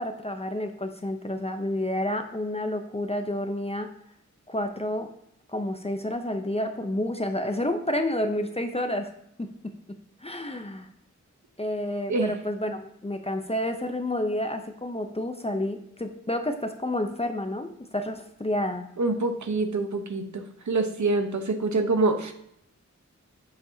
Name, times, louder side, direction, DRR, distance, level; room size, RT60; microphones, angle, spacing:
voice 1, 0.0-3.9 4.5-5.1 5.5-9.1 9.4-9.7 10.2-10.9 11.6-18.9, left 1 dB, 20° left, 6 dB, 0.6 m, -30 dB
voice 2, 19.0-22.3, right 3 dB, 70° right, 6 dB, 0.9 m, -26 dB
6.9 x 6.7 x 2.8 m, 0.74 s
wide cardioid pair, 65°, 30 cm